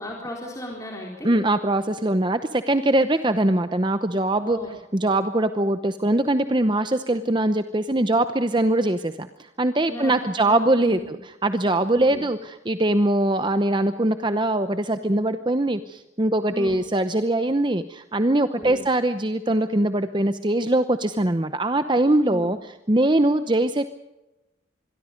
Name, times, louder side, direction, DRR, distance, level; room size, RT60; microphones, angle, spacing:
voice 1, 0.0-1.3 4.4-4.7 9.9-11.2 11.9-12.2 16.5-16.8 18.5-18.8 22.2-22.5, equal, 15° left, -1 dB, 4.0 m, -36 dB
voice 2, 1.2-4.6 4.9-11.2 11.4-22.6 22.9-23.8, right 1 dB, 25° right, 10 dB, 0.8 m, -22 dB
26.0 x 22.5 x 5.2 m, 1.0 s
head